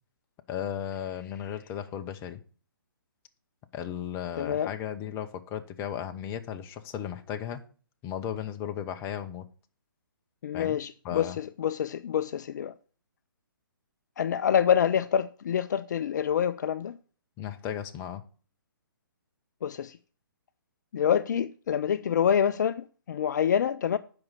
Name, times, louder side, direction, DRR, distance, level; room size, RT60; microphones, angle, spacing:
voice 1, 0.5-2.4 3.7-7.6 8.0-9.5 10.5-10.8 11.0-11.4 17.4-18.2, left 9 dB, 20° left, 0.7 m, -35 dB
voice 2, 4.4-4.7 10.4-11.3 11.6-12.7 14.2-16.9 19.6-19.9 20.9-24.0, left 8 dB, 55° left, 0.4 m, -26 dB
7.7 x 5.3 x 7.2 m
hypercardioid pair, 140°, 12 cm